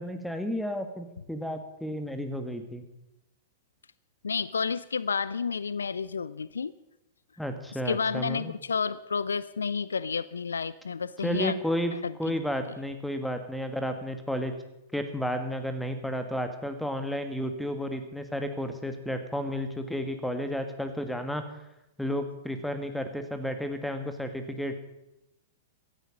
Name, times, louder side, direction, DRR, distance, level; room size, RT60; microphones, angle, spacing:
voice 1, 0.0-2.8 7.4-8.6 11.2-11.9 12.2-14.5 14.9-21.7 22.0-24.7, equal, ahead, 8 dB, 1.7 m, -32 dB
voice 2, 4.2-6.7 7.9-11.5 12.0-12.1, left 5 dB, 70° left, 19 dB, 0.4 m, -30 dB
16.5 x 13.0 x 5.2 m, 0.89 s
figure-of-eight pair, 100°, 0 cm